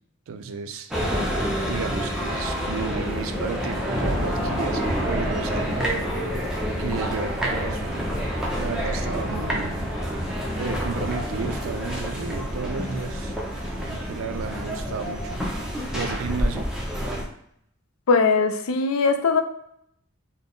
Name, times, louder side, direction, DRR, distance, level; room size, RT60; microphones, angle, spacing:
voice 1, 0.3-0.9 1.6-5.9 6.2-6.4 6.8-8.1 8.6-9.8 10.6-13.4 13.9-15.4 15.9-17.2, right 5 dB, 70° right, 8 dB, 0.4 m, -33 dB
sound 1, 0.9-17.2, equal, 5° right, 0.5 m, -27 dB
voice 2, 18.1-19.4, left 4 dB, 80° left, 7 dB, 0.4 m, -20 dB
3.7 x 2.1 x 3.7 m, 0.71 s
head